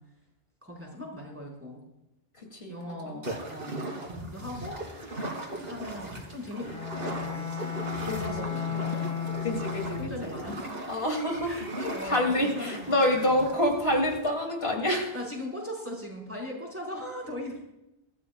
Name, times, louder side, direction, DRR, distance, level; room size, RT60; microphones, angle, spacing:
voice 1, 0.6-1.8 2.7-4.8 5.5-6.7 7.2-7.7 8.1-9.6 10.0-10.7 11.4-11.7 11.9-13.3 15.1-17.7, left 1 dB, 15° right, -3 dB, 5.0 m, -39 dB
voice 2, 2.4-2.8 3.1-3.2 8.1-8.8 9.1-10.4 10.9-15.1, left 1 dB, 80° left, 1 dB, 2.9 m, -28 dB
sound 1, 3.2-14.2, right 1 dB, 70° right, 2.8 m, -38 dB
Bowed string instrument, 6.6-10.4, left 7 dB, 35° left, 2.0 m, -34 dB
23.5 x 14.0 x 2.4 m, 0.89 s
omnidirectional pair, 1.0 m